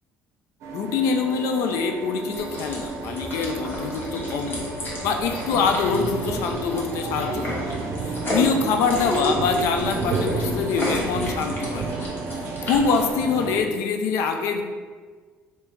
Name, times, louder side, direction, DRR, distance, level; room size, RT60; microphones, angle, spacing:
sound 1, 0.6-13.6, right 3 dB, 65° right, 0.5 m, -31 dB
voice 1, 0.7-4.7 5.0-7.8 8.3-12.0 12.6-14.6, left 5 dB, 80° left, 5 dB, 0.4 m, -24 dB
sound 2, 2.3-13.1, left 1 dB, 45° left, 1.1 m, -34 dB
3.4 x 2.8 x 3.0 m, 1.5 s
cardioid pair, 105°, 5 cm